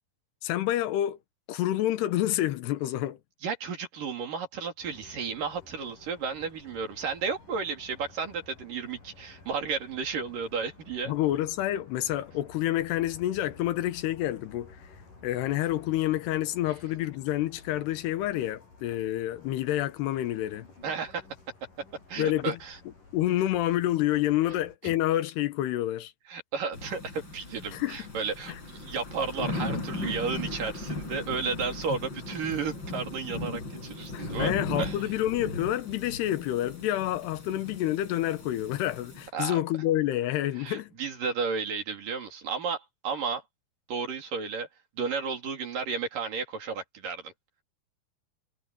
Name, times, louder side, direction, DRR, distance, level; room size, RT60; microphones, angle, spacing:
voice 1, 0.4-1.2 1.5-3.2 11.1-14.8 15.2-20.7 22.2-22.6 23.1-26.1 27.7-28.1 28.5-28.6 34.1-40.9, left 14 dB, 90° left, 3.2 m, -28 dB
voice 2, 3.4-11.1 20.8-21.2 22.1-22.8 24.8-24.9 26.3-34.5 34.8-35.0 39.3-39.6 40.6-43.4 43.9-44.7 45.0-47.3, right 5 dB, 55° right, 4.8 m, -33 dB
sound 1, 4.8-24.8, left 3 dB, 55° left, 9.2 m, -53 dB
sound 2, 26.7-39.3, left 2 dB, 30° left, 5.9 m, -37 dB
omnidirectional pair, 4.6 m